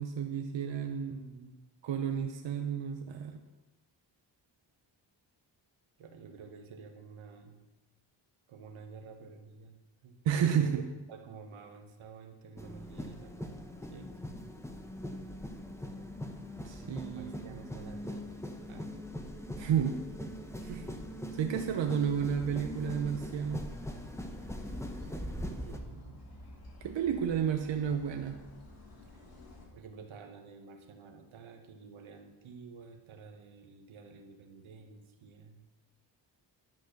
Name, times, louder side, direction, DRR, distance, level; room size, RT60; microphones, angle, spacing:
voice 1, 0.0-1.1 1.8-3.4 10.2-10.9 16.6-17.6 19.6-20.0 21.4-23.7 26.8-28.4, right 8 dB, 70° right, 5 dB, 0.8 m, -31 dB
voice 2, 1.1-1.6 6.0-7.6 8.5-9.8 10.0-10.2 10.5-10.7 11.1-13.6 13.9-14.1 16.8-18.3 18.7-19.0 20.6-21.1 25.0-26.2 29.2-29.3 29.7-35.6, right 5 dB, 90° right, 5 dB, 1.2 m, -50 dB
sound 1, 12.6-25.8, equal, 5° left, 0.9 m, -41 dB
sound 2, 22.1-29.7, left 1 dB, 50° left, 2.5 m, -52 dB
11.0 x 4.2 x 6.5 m, 1.1 s
cardioid pair, 85°, 47 cm